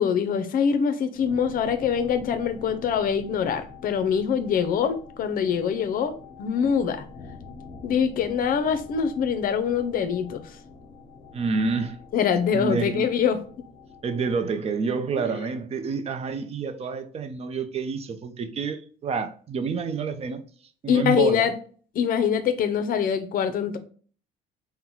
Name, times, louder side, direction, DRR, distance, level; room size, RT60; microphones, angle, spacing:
voice 1, 0.0-7.0 7.8-10.4 12.1-13.4 20.9-21.5 21.9-23.8, left 7 dB, 55° left, 0.6 m, -24 dB
sound 1, 1.1-14.5, left 4 dB, 40° left, 1.3 m, -46 dB
voice 2, 11.3-12.0 12.5-13.1 14.0-20.4 20.8-21.5, right 5 dB, 40° right, 0.6 m, -28 dB
3.8 x 2.2 x 4.4 m
cardioid pair, 110°, 17 cm